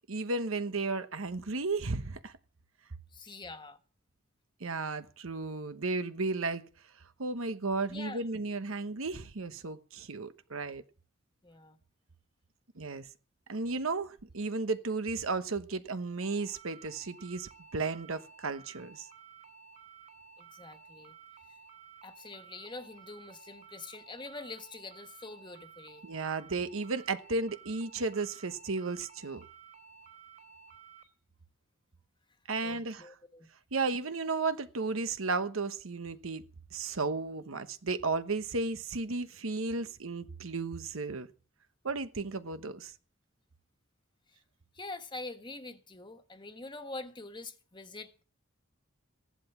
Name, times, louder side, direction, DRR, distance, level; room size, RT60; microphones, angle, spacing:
voice 1, 0.1-2.3 4.6-6.6 7.2-10.8 12.8-13.1 13.5-19.1 26.0-29.4 32.5-33.1 33.7-36.4 36.7-41.3 41.8-42.9, right 3 dB, 90° right, 1.1 m, -34 dB
voice 2, 3.1-3.8 7.9-8.2 11.4-11.8 20.4-21.1 22.0-26.1 32.6-33.5 44.7-48.2, left 3 dB, 25° left, 1.4 m, -45 dB
sound 1, 16.2-31.0, right 6 dB, 40° right, 3.4 m, -54 dB
15.5 x 11.5 x 5.9 m
head